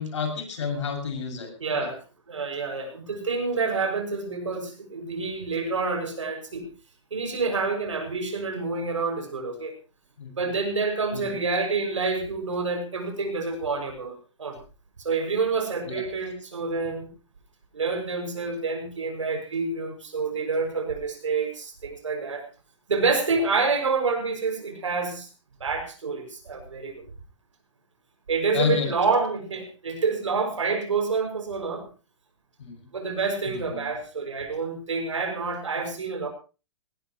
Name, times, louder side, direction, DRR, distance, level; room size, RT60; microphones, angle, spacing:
voice 1, 0.0-1.9 10.2-10.3 11.1-11.4 15.9-16.0 28.5-28.9 32.6-32.7 33.5-33.9, left 5 dB, 75° left, 4 dB, 6.9 m, -30 dB
voice 2, 1.6-2.0 2.3-6.6 7.1-9.7 10.4-14.6 15.0-17.1 17.7-22.5 22.9-25.3 25.6-27.0 28.3-31.9 32.9-36.3, right 4 dB, 85° right, 5 dB, 6.3 m, -28 dB
20.5 x 18.5 x 3.1 m, 0.33 s
hypercardioid pair, 125°, 16 cm